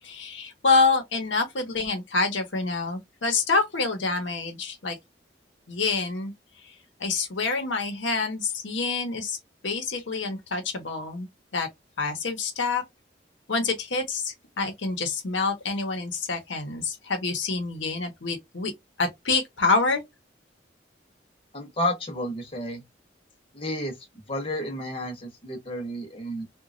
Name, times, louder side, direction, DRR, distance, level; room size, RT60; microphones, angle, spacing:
voice 1, 0.0-5.0 5.7-6.3 7.0-9.4 9.6-11.3 11.5-11.7 12.0-12.8 13.5-18.7 19.0-20.0, left 4 dB, 85° left, 0.8 m, -27 dB
voice 2, 21.5-22.8 23.5-23.9 24.3-26.4, left 1 dB, 30° left, 0.8 m, -31 dB
2.9 x 2.3 x 2.5 m
head